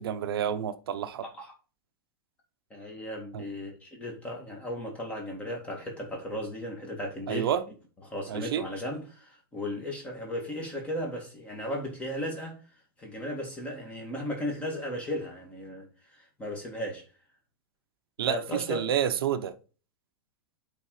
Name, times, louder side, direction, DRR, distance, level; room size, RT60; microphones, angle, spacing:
voice 1, 0.0-1.2 3.3-3.4 7.3-7.6 8.3-8.6 18.2-18.4 18.7-19.5, right 9 dB, 85° right, 1.0 m, -29 dB
voice 2, 1.2-1.5 2.7-7.5 8.1-12.6 13.0-15.8 16.1-17.0 18.2-18.8, left 1 dB, 10° left, 2.1 m, -35 dB
8.5 x 4.0 x 4.9 m
supercardioid pair, 170°, 12 cm